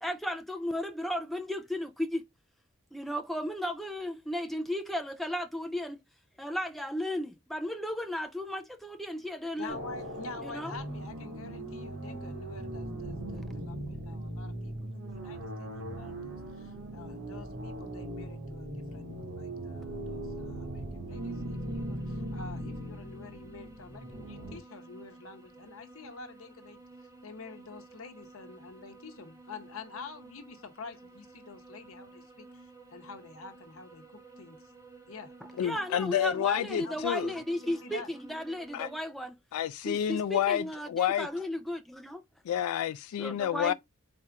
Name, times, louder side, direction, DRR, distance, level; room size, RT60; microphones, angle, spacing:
voice 1, 0.0-2.2 2.9-6.0 6.4-9.8 10.4-10.8 35.6-39.3 39.9-42.2 43.2-43.7, left 1 dB, ahead, 0.3 m, -35 dB
voice 2, 9.5-14.7 15.0-26.8 27.2-34.6 35.1-35.9 36.6-37.2 37.6-38.1, left 4 dB, 70° left, 0.8 m, -47 dB
sound 1, 9.7-24.6, right 1 dB, 70° right, 1.5 m, -39 dB
sound 2, 21.1-39.0, right 3 dB, 15° right, 0.7 m, -53 dB
voice 3, 35.6-37.3 38.7-38.9 39.5-41.3 42.4-43.7, left 10 dB, 85° left, 0.3 m, -29 dB
4.2 x 2.4 x 4.5 m
head